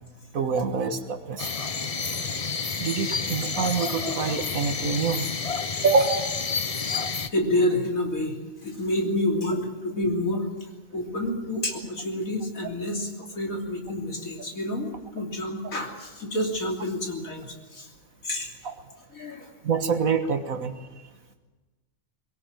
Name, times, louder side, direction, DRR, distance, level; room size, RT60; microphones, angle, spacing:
voice 1, 0.3-1.5 2.1-2.2 2.8-5.3 5.8-6.3 18.6-18.7 19.6-20.7, right 5 dB, 85° right, 8 dB, 1.9 m, -26 dB
sound 1, 1.4-7.3, left 5 dB, 30° left, 0.8 m, -30 dB
voice 2, 7.3-8.4 8.6-10.5 10.9-17.9 18.2-18.5 19.1-19.5, left 1 dB, 85° left, 2 dB, 3.6 m, -28 dB
22.0 x 17.5 x 9.1 m, 1.2 s
omnidirectional pair, 1.4 m